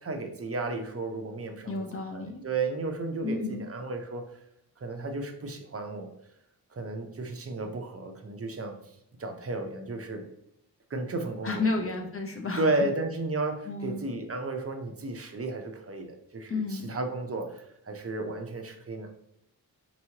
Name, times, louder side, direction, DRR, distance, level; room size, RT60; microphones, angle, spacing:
voice 1, 0.0-1.7 2.1-4.2 4.8-6.1 6.7-10.2 10.9-12.0 12.6-19.1, right 2 dB, 35° right, 4 dB, 0.7 m, -33 dB
voice 2, 1.7-2.4 3.2-3.7 11.4-12.9 13.7-14.0 16.5-16.9, left 3 dB, 35° left, 3 dB, 0.8 m, -32 dB
4.5 x 3.0 x 2.8 m, 0.80 s
wide cardioid pair, 85°, 39 cm